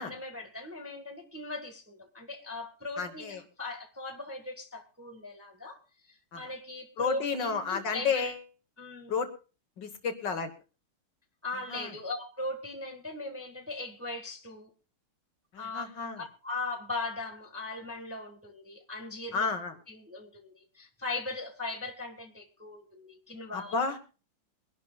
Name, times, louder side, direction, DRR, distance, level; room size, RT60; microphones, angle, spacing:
voice 1, 0.0-5.8 6.1-8.3 8.8-9.2 11.4-14.7 15.6-15.9 16.2-19.5 19.9-23.7, left 2 dB, 10° right, 1.3 m, -39 dB
voice 2, 3.0-3.4 6.3-6.4 7.0-8.4 9.1-9.3 9.8-10.5 11.7-11.9 15.5-16.2 19.3-19.7 23.5-24.0, left 5 dB, 60° left, 1.9 m, -31 dB
23.5 x 11.5 x 2.3 m
omnidirectional pair, 2.3 m